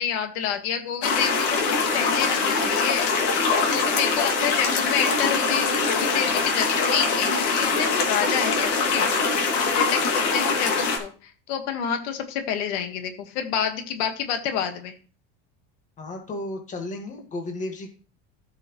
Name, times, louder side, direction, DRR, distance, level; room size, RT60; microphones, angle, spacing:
voice 1, 0.0-3.4 3.7-9.5 9.8-14.9, left 8 dB, 85° left, 6 dB, 1.7 m, -28 dB
sound 1, 1.0-11.0, left 4 dB, 55° left, 2.7 m, -23 dB
voice 2, 16.0-17.9, left 2 dB, 25° left, 3 dB, 1.8 m, -33 dB
14.0 x 6.1 x 3.1 m, 0.37 s
cardioid pair, 165°, 32 cm